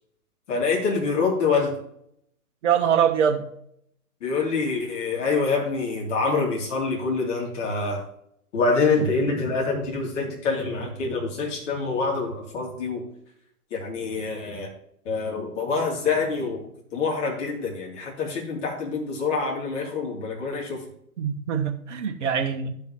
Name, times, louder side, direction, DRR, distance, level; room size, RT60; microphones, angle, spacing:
voice 1, 0.5-1.8 4.2-8.0 8.5-13.0 13.7-14.7 15.0-20.8, left 4 dB, 50° left, -2 dB, 3.0 m, -26 dB
voice 2, 2.6-3.5 21.2-22.7, right 8 dB, 50° right, 5 dB, 1.3 m, -23 dB
14.0 x 5.5 x 3.0 m, 0.73 s
figure-of-eight pair, 120°, 46 cm